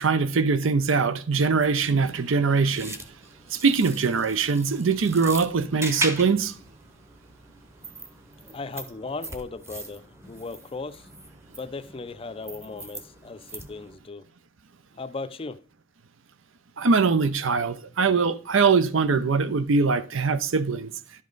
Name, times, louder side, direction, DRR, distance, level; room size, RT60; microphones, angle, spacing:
voice 1, 0.0-3.0 3.5-6.6 16.8-20.9, right 4 dB, 80° right, 0.6 m, -22 dB
sound 1, 1.3-14.0, right 2 dB, 15° right, 0.9 m, -39 dB
voice 2, 8.5-11.1 11.6-14.3 14.9-15.6, left 3 dB, 30° left, 0.5 m, -37 dB
11.5 x 5.3 x 3.9 m
head